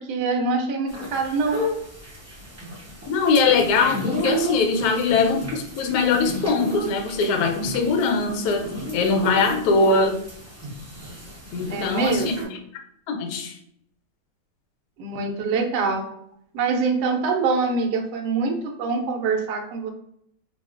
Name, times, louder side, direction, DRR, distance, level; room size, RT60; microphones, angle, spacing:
voice 1, 0.0-1.6 11.7-12.6 15.0-16.0 16.5-19.9, right 4 dB, 70° right, 2 dB, 1.1 m, -24 dB
sound 1, 0.9-12.4, equal, 25° right, 0.3 m, -33 dB
voice 2, 3.1-10.2 11.5-12.3 13.1-13.5, left 4 dB, 70° left, 4 dB, 1.0 m, -21 dB
3.6 x 2.3 x 2.4 m, 0.71 s
omnidirectional pair, 2.0 m